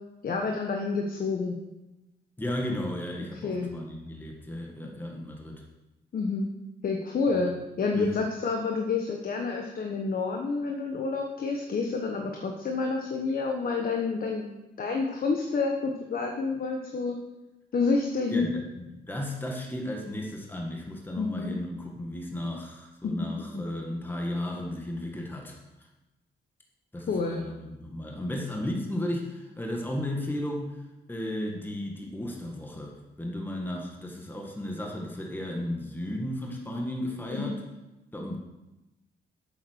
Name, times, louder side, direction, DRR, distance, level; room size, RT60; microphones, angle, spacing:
voice 1, 0.2-1.6 3.4-3.7 6.1-6.5 6.8-7.5 7.8-14.5 14.8-17.2 17.7-18.5 21.2-21.6 23.0-23.3 23.5-23.6 27.1-27.4 37.3-37.5, left 4 dB, 50° left, 2 dB, 1.3 m, -29 dB
voice 2, 2.4-5.6 7.4-7.5 7.9-8.1 18.3-25.6 26.9-30.8 31.1-37.6 38.1-38.4, left 1 dB, 10° left, 0 dB, 1.6 m, -34 dB
8.4 x 7.5 x 6.5 m, 1.0 s
cardioid pair, 110°, 19 cm